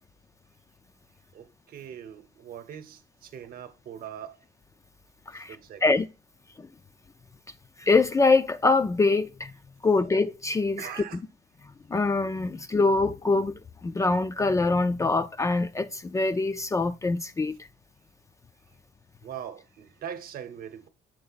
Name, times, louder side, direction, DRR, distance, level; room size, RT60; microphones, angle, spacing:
voice 1, 1.3-4.4 5.5-6.0 10.8-11.2 19.2-20.9, right 9 dB, 60° right, 0.9 m, -41 dB
voice 2, 5.3-6.1 6.6-6.7 7.8-9.5 9.8-10.9 11.6-17.7, left 3 dB, 20° left, 0.4 m, -24 dB
6.6 x 3.8 x 4.0 m
cardioid pair, 110°, 17 cm